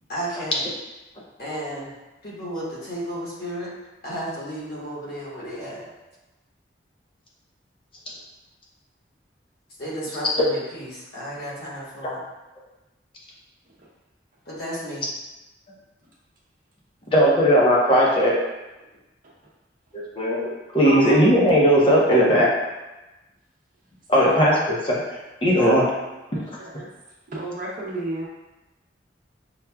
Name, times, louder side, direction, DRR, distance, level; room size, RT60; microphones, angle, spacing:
voice 1, 0.1-0.6 1.4-1.9 2.2-3.7 4.0-5.8 9.8-12.2 14.5-15.1, equal, 55° left, -6 dB, 1.1 m, -33 dB
voice 2, 17.1-18.3 19.9-22.5 24.1-24.6 24.8-25.9, equal, 30° left, -4 dB, 0.7 m, -18 dB
voice 3, 20.8-21.3 24.2-24.6 25.6-25.7 26.3-26.5 26.7-26.9 27.3-28.3, right 1 dB, 45° right, -4 dB, 0.7 m, -30 dB
5.8 x 2.3 x 2.3 m, 1.0 s
head